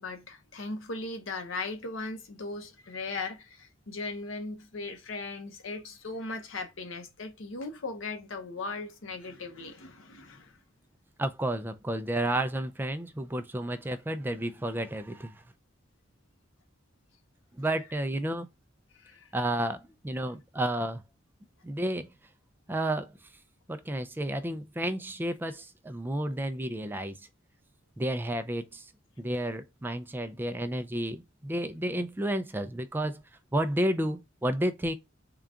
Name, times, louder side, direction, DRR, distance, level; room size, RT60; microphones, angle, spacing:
voice 1, 0.0-10.6 18.9-19.3, left 3 dB, 85° left, 0.9 m, -38 dB
voice 2, 11.2-15.4 17.6-18.5 19.3-21.0 21.6-22.1 22.7-23.1 23.7-27.2 28.0-28.9 29.2-33.2 33.5-35.0, right 1 dB, 10° right, 0.3 m, -31 dB
3.8 x 2.3 x 3.5 m
head